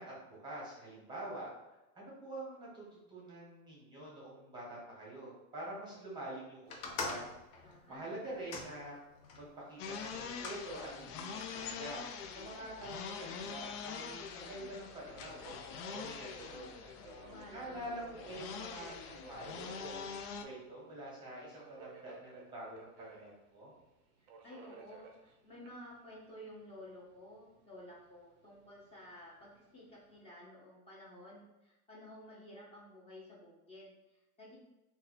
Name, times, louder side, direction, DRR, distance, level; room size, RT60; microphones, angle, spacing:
voice 1, 0.0-1.5 1.9-8.9 9.4-16.8 17.5-20.1 20.4-23.7, right 1 dB, 10° right, -6 dB, 1.0 m, -46 dB
sound 1, 6.7-9.5 10.1-10.6 11.4-12.1, left 3 dB, 65° left, 0.8 m, -44 dB
voice 2, 7.6-8.0 16.9-18.6 24.4-34.6, left 1 dB, 15° left, -5 dB, 0.7 m, -53 dB
sound 2, 9.8-20.5, left 6 dB, 90° left, 0.6 m, -45 dB
Subway metro underground, 14.7-30.2, right 5 dB, 40° right, 0.5 m, -59 dB
2.6 x 2.3 x 4.0 m, 0.99 s
supercardioid pair, 155°, 45 cm